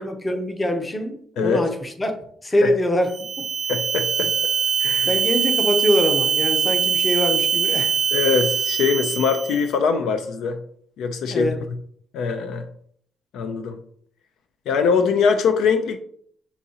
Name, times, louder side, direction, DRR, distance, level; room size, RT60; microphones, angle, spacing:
voice 1, 0.0-2.1 2.4-3.5 5.0-7.9 11.3-11.6, left 1 dB, 20° left, 0.7 m, -23 dB
sound 1, 3.1-9.7, right 7 dB, 65° right, 0.4 m, -22 dB
voice 2, 3.7-4.3 4.8-5.2 8.1-10.6 11.0-11.5 12.1-12.7 13.3-13.8 14.7-16.0, left 5 dB, 80° left, 0.4 m, -22 dB
5.9 x 2.8 x 2.8 m
cardioid pair, 85°, 0 cm